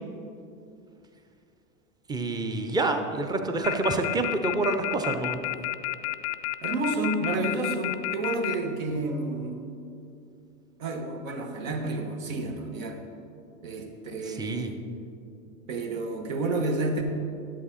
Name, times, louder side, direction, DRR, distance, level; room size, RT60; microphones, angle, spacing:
voice 1, 2.1-5.4 14.3-14.7, right 2 dB, 10° right, 6 dB, 0.6 m, -27 dB
sound 1, 3.6-8.5, left 19 dB, 45° left, 0.4 m, -30 dB
voice 2, 6.6-9.6 10.8-13.0 13.6-14.8 15.7-17.0, right 2 dB, 70° right, 4 dB, 1.4 m, -30 dB
10.5 x 7.8 x 4.2 m, 2.6 s
hypercardioid pair, 105°, 41 cm